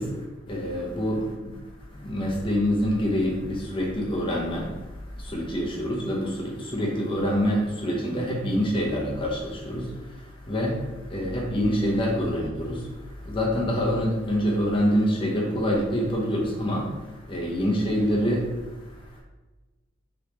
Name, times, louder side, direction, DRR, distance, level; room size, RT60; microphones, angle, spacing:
voice 1, 0.0-1.6 1.9-19.2, equal, 25° left, -3 dB, 0.7 m, -26 dB
3.1 x 3.0 x 3.2 m, 1.2 s
head